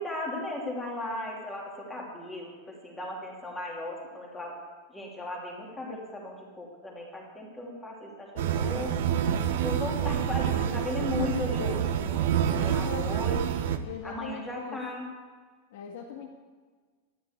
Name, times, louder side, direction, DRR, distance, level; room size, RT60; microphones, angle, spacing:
voice 1, 0.0-4.6 4.9-8.9 9.6-12.3 12.6-13.7 14.0-15.1, left 2 dB, 10° left, -2 dB, 2.9 m, -36 dB
sound 1, 8.4-13.8, right 9 dB, 60° right, 1.2 m, -27 dB
voice 2, 12.5-13.1 13.8-14.8 15.7-16.3, left 7 dB, 60° left, -1 dB, 1.9 m, -40 dB
12.5 x 12.5 x 8.1 m, 1.5 s
supercardioid pair, 175°, 0 cm